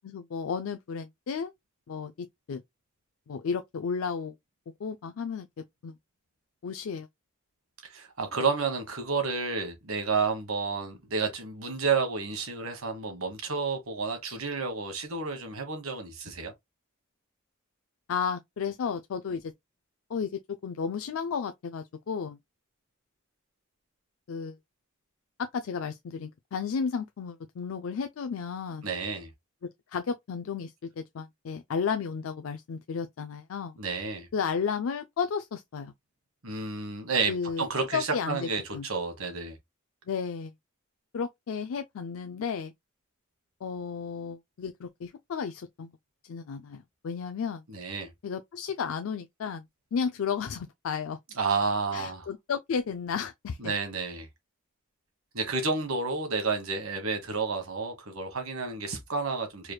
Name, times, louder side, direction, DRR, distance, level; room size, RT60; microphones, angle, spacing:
voice 1, 0.0-1.5 1.9-2.6 3.3-4.4 4.8-5.5 5.8-6.0 6.6-7.1 18.1-19.5 20.1-22.4 24.3-24.6 25.4-28.9 29.9-33.8 34.3-35.9 37.3-37.6 37.9-38.9 40.1-40.5 41.1-42.7 43.6-45.9 46.2-47.6 48.2-49.6 49.9-51.2 51.9-53.7, left 6 dB, 70° left, 0.4 m, -33 dB
voice 2, 7.9-16.5 28.8-29.3 33.8-34.3 36.4-39.6 47.7-48.1 51.4-52.3 53.6-54.3 55.3-59.7, right 4 dB, 80° right, 1.4 m, -30 dB
4.7 x 3.2 x 2.2 m
head